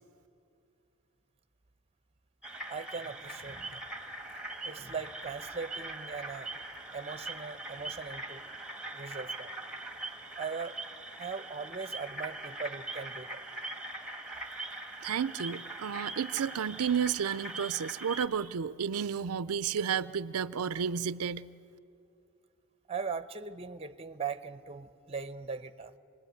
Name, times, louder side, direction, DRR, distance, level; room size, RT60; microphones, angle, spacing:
sound 1, 2.4-18.3, right 2 dB, 5° right, 1.6 m, -42 dB
voice 1, 2.7-3.8 4.6-6.5 6.9-8.5 8.9-9.5 10.4-10.8 11.2-13.4 22.9-25.9, right 5 dB, 30° right, 12 dB, 0.8 m, -39 dB
voice 2, 15.0-21.5, right 7 dB, 90° right, 15 dB, 0.5 m, -32 dB
27.0 x 20.5 x 9.3 m, 2.6 s
head